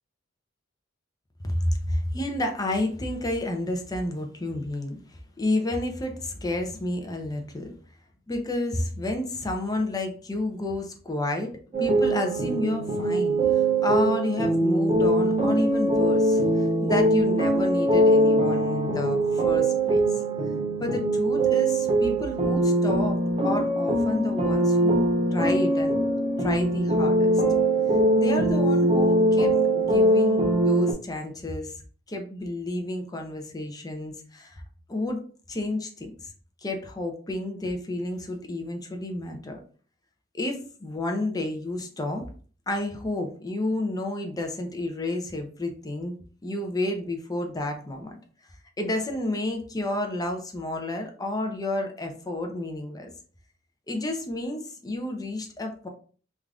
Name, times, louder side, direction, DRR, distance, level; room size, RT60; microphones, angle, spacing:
voice 1, 1.4-7.7 8.3-20.0 20.8-25.0 25.3-26.0 26.4-27.4 28.2-31.8 32.1-34.6 34.9-35.2 35.5-36.3 36.6-39.6 40.3-42.2 42.7-46.2 46.4-48.2 48.8-53.1 53.9-55.9, left 2 dB, 20° left, 4 dB, 0.5 m, -30 dB
sound 1, 11.7-30.9, right 1 dB, 30° right, 0.5 m, -22 dB
3.3 x 2.4 x 2.3 m, 0.41 s
head